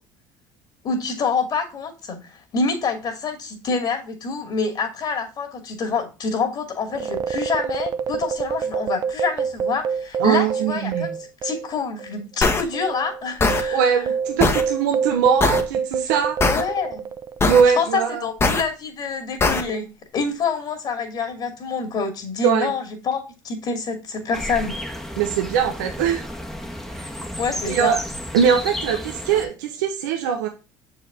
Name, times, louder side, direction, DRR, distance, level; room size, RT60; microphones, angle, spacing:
voice 1, 0.8-11.1 11.4-14.0 16.4-17.0 17.6-24.7 27.4-28.0, left 4 dB, 45° left, 3 dB, 2.3 m, -26 dB
sound 1, 6.9-11.7 12.0-12.1 12.7-17.5, right 6 dB, 40° right, 0.5 m, -27 dB
voice 2, 10.2-11.1 13.7-16.4 17.5-18.2 22.4-22.7 25.2-26.2 26.9-27.1 27.7-28.0 28.3-30.5, right 7 dB, 85° right, 4 dB, 0.9 m, -21 dB
sound 2, 12.4-12.6 13.4-13.6 14.4-14.6 15.4-15.6 16.4-16.6 17.4-17.6 18.4-18.6 19.4-19.6, left 3 dB, 25° left, 1.3 m, -19 dB
sound 3, 24.3-29.5, left 1 dB, 5° left, 1.3 m, -32 dB
6.6 x 4.8 x 3.5 m, 0.29 s
supercardioid pair, 85°, 10 cm